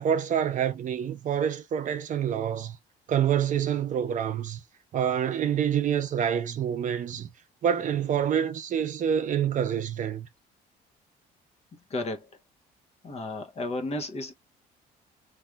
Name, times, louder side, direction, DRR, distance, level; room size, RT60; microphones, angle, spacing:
voice 1, 0.0-2.8 3.1-4.6 4.9-7.3 7.6-10.3, right 8 dB, 50° right, 0.6 m, -27 dB
voice 2, 11.9-12.3 13.0-14.3, left 2 dB, 40° left, 0.9 m, -33 dB
3.3 x 2.6 x 2.3 m
cardioid pair, 110°, 17 cm